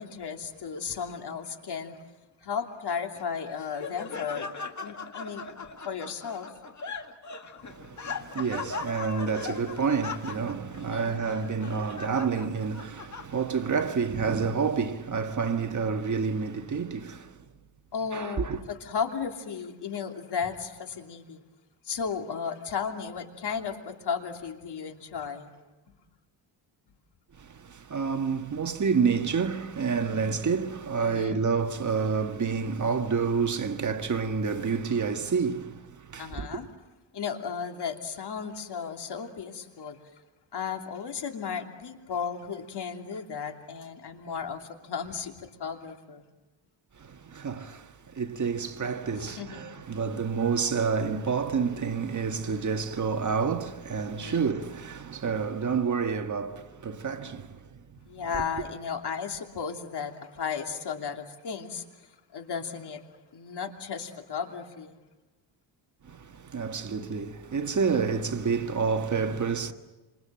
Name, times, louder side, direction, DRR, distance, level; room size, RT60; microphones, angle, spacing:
voice 1, 0.0-2.0 2.4-4.5 4.8-5.6 5.8-6.5 10.8-11.2 17.9-21.4 21.9-25.5 31.0-31.4 36.2-36.7 37.1-40.0 40.5-46.2 49.1-49.7 54.2-54.5 58.0-61.8 62.3-63.0 63.3-65.0, left 6 dB, 60° left, 3.0 m, -35 dB
Laughter, 3.2-13.7, left 4 dB, 40° left, 2.0 m, -39 dB
voice 2, 7.7-17.3 18.1-18.6 27.4-36.6 47.0-57.6 66.0-69.7, right 5 dB, 40° right, 1.7 m, -29 dB
27.5 x 27.0 x 7.6 m
cardioid pair, 125°, 45 cm